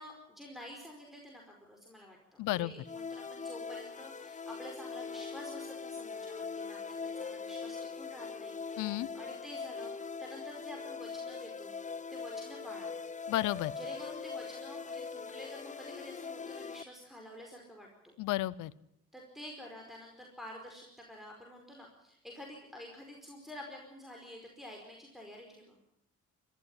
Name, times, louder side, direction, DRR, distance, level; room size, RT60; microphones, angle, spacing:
voice 1, 0.0-11.8 12.1-12.9 13.7-18.1 19.1-25.8, left 1 dB, ahead, 0 dB, 4.9 m, -49 dB
voice 2, 2.4-2.7 8.8-9.1 13.3-13.7 18.2-18.7, left 17 dB, 90° left, 21 dB, 0.8 m, -32 dB
sound 1, 2.8-16.8, left 5 dB, 25° left, 0.8 m, -41 dB
21.5 x 14.5 x 9.9 m, 0.78 s
cardioid pair, 90°, 30 cm